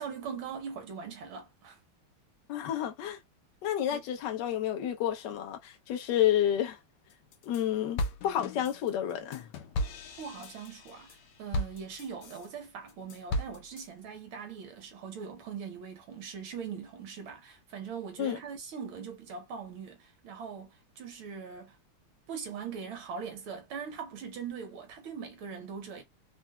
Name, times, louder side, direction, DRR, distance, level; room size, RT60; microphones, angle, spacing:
voice 1, 0.0-1.8 3.9-4.1 10.2-21.8 22.3-26.0, right 6 dB, 75° right, 1.7 m, -41 dB
voice 2, 2.5-3.2 3.6-6.8 7.4-9.4 18.2-18.4, left 11 dB, 70° left, 1.2 m, -30 dB
sound 1, 7.1-7.6 8.0-12.5 12.9-13.9, left 1 dB, 90° left, 1.5 m, -36 dB
4.3 x 2.0 x 2.2 m
omnidirectional pair, 2.3 m